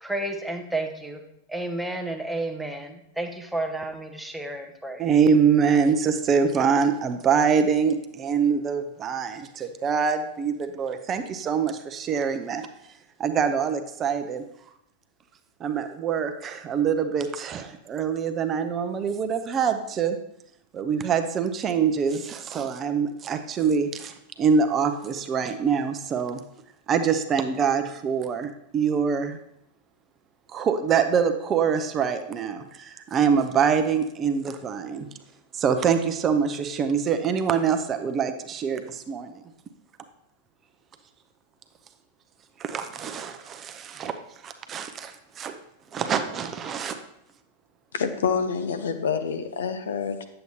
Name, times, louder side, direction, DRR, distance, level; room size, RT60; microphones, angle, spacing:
voice 1, 0.0-1.2 1.5-5.0, right 2 dB, ahead, 4 dB, 0.8 m, -31 dB
voice 2, 5.0-12.7 13.2-14.4 15.6-20.2 20.7-26.4 26.9-29.4 30.5-35.1 35.5-39.4 42.6-44.1 44.4-45.5 45.9-47.0, right 6 dB, 25° right, 7 dB, 0.6 m, -24 dB
voice 3, 47.9-50.2, left 6 dB, 65° left, 10 dB, 0.6 m, -27 dB
9.2 x 7.7 x 2.8 m, 0.76 s
figure-of-eight pair, 90°, 0 cm